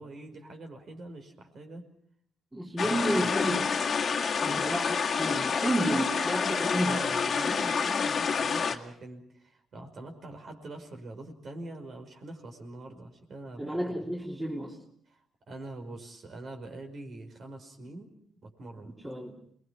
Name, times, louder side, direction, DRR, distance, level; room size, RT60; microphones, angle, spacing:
voice 1, 0.0-1.8 2.8-3.3 4.4-4.7 6.6-14.2 15.1-15.2 15.5-18.1 18.4-19.0, right 2 dB, 50° right, 4 dB, 5.5 m, -44 dB
voice 2, 2.5-3.6 4.4-7.0 13.6-14.8 19.0-19.4, right 1 dB, 10° right, 0 dB, 3.2 m, -31 dB
sound 1, 2.8-8.8, left 6 dB, 45° left, 1.9 m, -28 dB
28.5 x 21.5 x 5.9 m, 0.65 s
cardioid pair, 90°, 0 cm